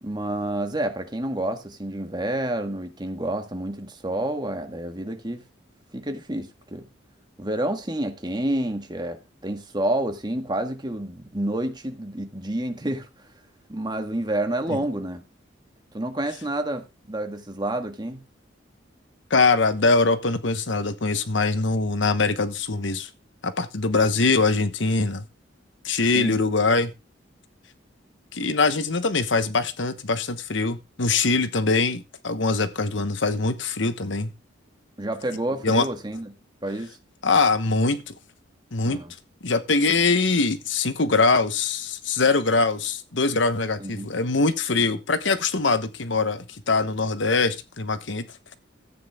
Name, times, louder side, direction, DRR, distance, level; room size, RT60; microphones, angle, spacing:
voice 1, 0.0-5.4 5.9-6.9 7.4-13.1 13.7-15.2 15.9-18.2 26.1-26.4 35.0-36.3 36.6-37.0 38.8-39.1 43.8-44.1, right 1 dB, 20° right, 1.8 m, -29 dB
voice 2, 19.3-23.1 23.4-25.2 25.8-26.9 28.3-34.3 35.6-35.9 37.2-38.1 38.7-39.0 39.4-48.3, left 3 dB, 70° left, 1.2 m, -23 dB
14.0 x 9.0 x 3.6 m
head